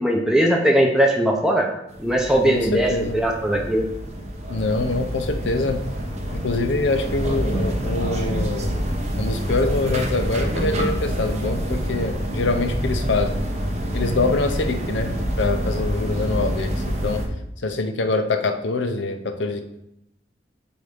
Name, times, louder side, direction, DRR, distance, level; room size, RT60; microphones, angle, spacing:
voice 1, 0.0-1.7 2.0-3.8, right 1 dB, 5° right, 0 dB, 0.6 m, -19 dB
sound 1, 1.9-17.3, equal, 40° right, 0.9 m, -27 dB
voice 2, 2.4-3.2 4.5-5.8 6.3-8.8 9.2-13.4 13.9-17.2 17.6-19.6, left 3 dB, 90° left, 7 dB, 0.6 m, -24 dB
7.9 x 2.7 x 5.1 m, 0.82 s
head